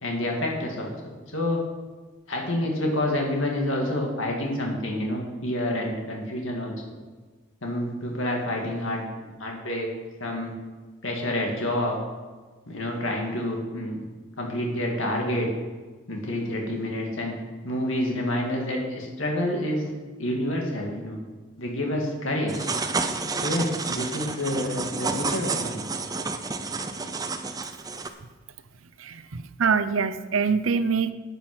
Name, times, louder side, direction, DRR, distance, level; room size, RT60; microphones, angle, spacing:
voice 1, 0.0-1.6 2.3-6.7 7.6-9.0 9.4-9.9 10.2-10.5 11.0-12.0 12.7-14.0 14.4-15.5 16.1-17.4 17.6-19.9 20.2-21.2 21.6-22.7 23.4-25.8, left 1 dB, 75° left, 0 dB, 2.2 m, -28 dB
sound 1, 22.5-28.1, right 4 dB, 20° right, 0.6 m, -30 dB
voice 2, 29.0-31.1, right 5 dB, 80° right, 11 dB, 0.7 m, -24 dB
10.0 x 9.1 x 6.2 m, 1.3 s
head